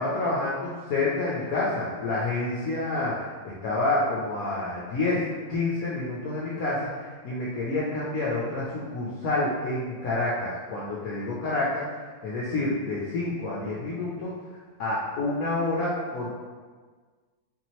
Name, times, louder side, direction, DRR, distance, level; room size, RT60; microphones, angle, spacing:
voice 1, 0.0-5.2 5.5-14.3 14.8-16.3, left 2 dB, 65° left, -6 dB, 1.0 m, -28 dB
4.1 x 2.8 x 3.0 m, 1.5 s
omnidirectional pair, 1.8 m